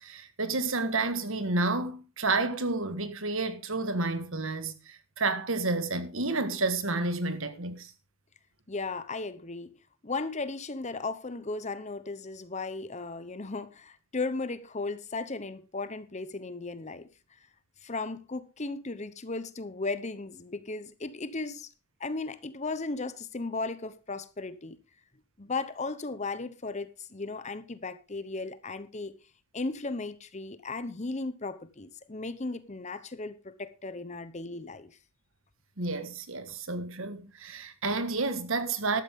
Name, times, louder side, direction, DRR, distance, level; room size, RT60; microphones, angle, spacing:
voice 1, 0.0-7.9 35.8-39.0, right 3 dB, 60° right, 1.6 m, -30 dB
voice 2, 8.7-9.7 10.0-17.1 17.8-21.7 22.0-24.8 25.4-29.2 29.5-34.9, left 3 dB, 30° left, 0.9 m, -36 dB
13.5 x 12.0 x 3.7 m
head